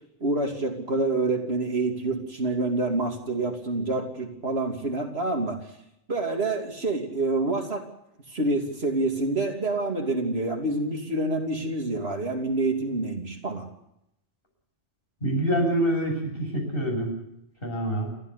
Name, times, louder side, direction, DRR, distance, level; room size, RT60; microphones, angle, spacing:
voice 1, 0.2-5.6 6.1-7.8 8.3-13.7, right 2 dB, 60° right, 3 dB, 3.1 m, -27 dB
voice 2, 15.2-17.1 17.6-18.1, right 1 dB, 50° left, 0 dB, 8.2 m, -26 dB
29.5 x 13.5 x 8.3 m, 0.80 s
omnidirectional pair, 1.2 m